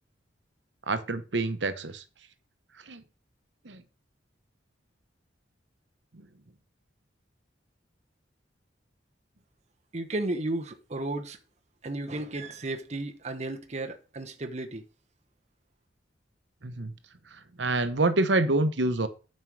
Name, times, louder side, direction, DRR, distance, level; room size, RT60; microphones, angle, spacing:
voice 1, 0.9-2.0 2.9-3.0 3.7-3.8 16.6-16.9 17.6-19.1, right 2 dB, 70° right, 1.0 m, -26 dB
voice 2, 9.9-11.4 11.8-14.8, right 2 dB, 40° right, 1.0 m, -33 dB
9.5 x 5.4 x 6.2 m
head